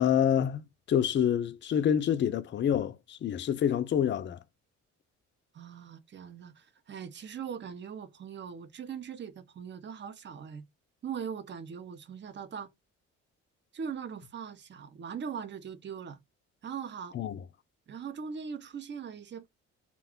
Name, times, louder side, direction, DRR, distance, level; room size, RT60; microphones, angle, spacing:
voice 1, 0.0-4.4 17.1-17.4, left 9 dB, 40° left, 0.4 m, -27 dB
voice 2, 5.5-10.6 11.0-12.7 13.7-16.2 16.6-17.2 17.9-19.5, right 7 dB, 40° right, 0.5 m, -40 dB
2.4 x 2.2 x 3.5 m
cardioid pair, 90°, 30 cm